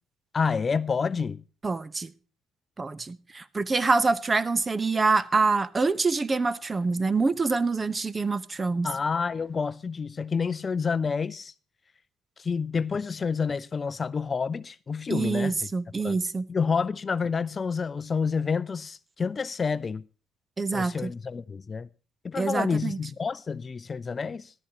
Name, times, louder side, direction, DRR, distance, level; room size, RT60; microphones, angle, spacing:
voice 1, 0.3-1.4 8.8-11.5 12.4-15.6 16.0-16.2 16.5-20.0 20.7-21.9 22.2-24.5, left 5 dB, 35° left, 0.4 m, -29 dB
voice 2, 1.6-2.1 2.8-8.9 15.1-16.4 20.6-21.1 22.4-23.0, right 4 dB, 30° right, 0.9 m, -26 dB
14.0 x 13.0 x 2.9 m
supercardioid pair, 70°, 0 cm